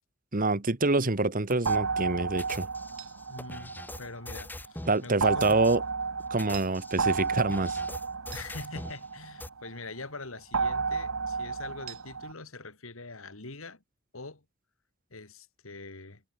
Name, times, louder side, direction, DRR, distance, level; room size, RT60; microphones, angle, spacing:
voice 1, 0.3-2.7 4.9-5.8 6.3-7.8, right 2 dB, 40° right, 1.4 m, -26 dB
sound 1, 1.5-1.8 2.4-5.0 5.4-5.8 6.3-9.0 9.4-9.5, left 1 dB, 10° left, 1.8 m, -43 dB
sound 2, 1.7-4.4 5.2-9.7 10.5-12.3, right 5 dB, 75° right, 1.3 m, -32 dB
voice 2, 3.3-5.5 8.3-13.8 14.1-14.4 15.1-16.2, left 3 dB, 70° left, 2.4 m, -44 dB
head